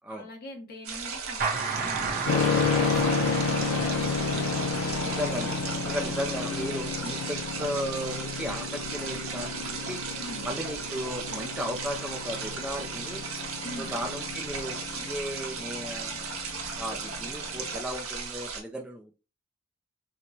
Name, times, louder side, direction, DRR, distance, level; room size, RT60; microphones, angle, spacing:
voice 1, 0.1-4.6 10.1-10.6 13.6-14.0, left 1 dB, 45° left, 1 dB, 0.8 m, -44 dB
sound 1, 0.8-18.6, right 5 dB, 70° right, 0.8 m, -36 dB
sound 2, 1.4-6.8, right 4 dB, 40° right, 0.7 m, -34 dB
sound 3, 2.3-17.8, left 5 dB, 85° left, 0.5 m, -32 dB
voice 2, 4.7-5.6 5.8-10.0 10.4-13.2 13.8-16.3 16.7-19.2, equal, 5° right, 0 dB, 0.3 m, -35 dB
4.2 x 2.0 x 2.7 m, 0.32 s
head